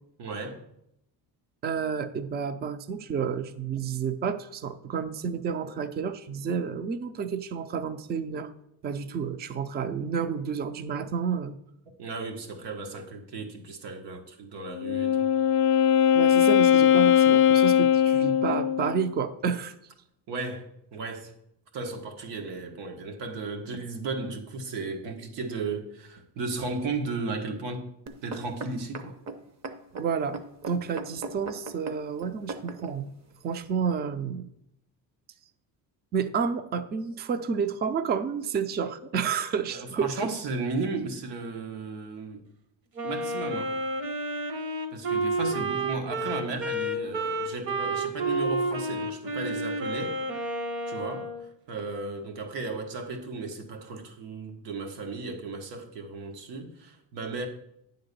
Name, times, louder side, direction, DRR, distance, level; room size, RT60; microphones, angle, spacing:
voice 1, 0.2-0.6 12.0-15.3 20.3-21.3 21.7-27.9 28.2-29.1 39.7-42.4 43.0-43.7 44.9-50.2 50.8-51.3 51.7-57.5, right 3 dB, 90° right, 1.5 m, -35 dB
voice 2, 1.6-8.5 8.8-11.6 16.1-19.7 29.9-33.1 33.4-34.5 36.1-40.1, right 6 dB, 25° right, 0.3 m, -30 dB
Wind instrument woodwind instrument, 14.7-19.0, left 9 dB, 70° left, 0.5 m, -20 dB
sound 1, 28.1-32.9 33.6-33.7, right 3 dB, 40° right, 0.7 m, -38 dB
Wind instrument woodwind instrument 2, 43.0-51.4, right 2 dB, 55° right, 1.2 m, -30 dB
9.6 x 3.9 x 6.7 m
cardioid pair, 165°, 41 cm